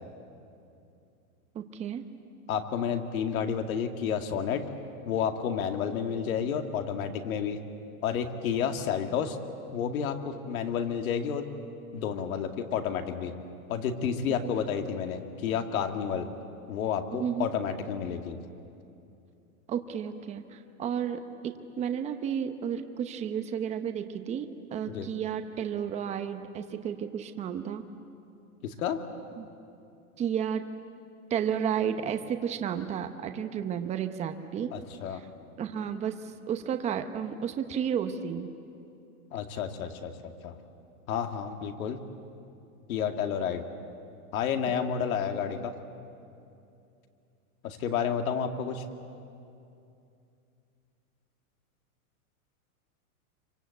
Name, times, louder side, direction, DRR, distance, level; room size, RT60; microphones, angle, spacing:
voice 1, 1.5-2.1 14.3-14.4 17.1-17.5 19.7-27.8 29.4-29.5 30.2-30.7 31.3-34.7 35.1-35.2 35.6-38.5 44.7-44.8, right 8 dB, 15° right, 8 dB, 0.8 m, -32 dB
voice 2, 2.5-4.6 5.1-7.6 8.0-9.4 9.7-11.4 11.9-13.3 13.7-16.3 16.7-18.4 24.9-25.1 28.6-29.0 34.7-35.2 39.3-40.5 41.1-42.0 42.9-43.6 44.3-45.7 47.6-48.8, left 7 dB, 70° left, 5 dB, 2.3 m, -30 dB
26.5 x 24.5 x 8.3 m, 2.6 s
supercardioid pair, 150°, 43 cm